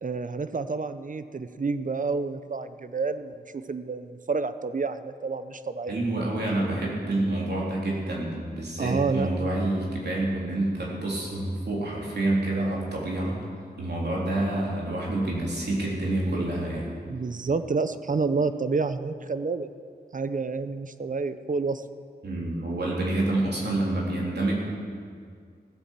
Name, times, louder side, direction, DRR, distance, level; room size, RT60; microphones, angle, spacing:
voice 1, 0.0-6.0 8.8-9.3 17.1-19.7 20.1-21.8, right 4 dB, 50° right, 12 dB, 0.7 m, -29 dB
voice 2, 5.9-13.3 13.8-16.9 22.2-24.5, right 2 dB, 75° right, -4 dB, 3.6 m, -28 dB
16.5 x 8.4 x 7.5 m, 2.2 s
wide cardioid pair, 90°, 17 cm